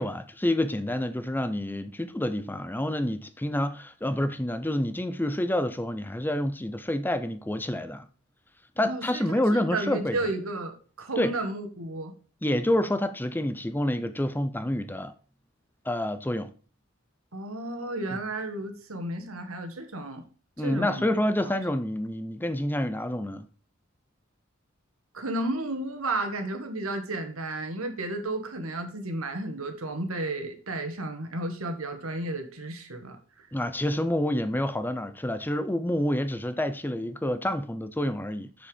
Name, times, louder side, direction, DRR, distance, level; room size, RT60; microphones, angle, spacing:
voice 1, 0.0-8.1 8.8-10.2 11.2-11.3 12.4-15.1 15.9-16.5 20.6-23.5 33.5-38.7, left 1 dB, 10° left, 0.6 m, -28 dB
voice 2, 8.8-9.2 9.5-12.1 17.3-20.2 20.6-21.1 25.1-33.5, right 2 dB, 85° right, 1.9 m, -33 dB
7.4 x 6.7 x 5.0 m
head